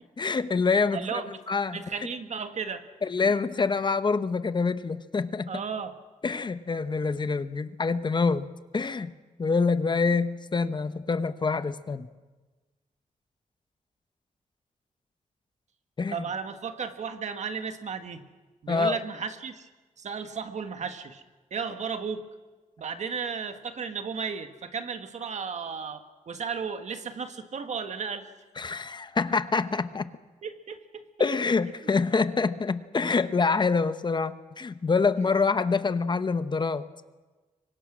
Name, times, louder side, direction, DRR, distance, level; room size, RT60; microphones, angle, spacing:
voice 1, 0.2-1.2 1.5-1.8 3.0-5.5 6.2-8.5 8.7-9.1 9.4-12.1 16.0-16.2 18.7-19.0 28.6-30.1 31.2-36.9, left 4 dB, 35° left, 12 dB, 0.8 m, -26 dB
voice 2, 0.9-1.3 1.7-2.8 3.2-3.4 5.5-5.9 16.1-18.2 18.6-19.7 20.0-21.2 21.5-22.3 22.8-28.3 30.4-31.0 31.8-31.9, right 6 dB, 60° right, 8 dB, 1.7 m, -34 dB
25.0 x 24.5 x 6.3 m, 1.3 s
wide cardioid pair, 125°, 13 cm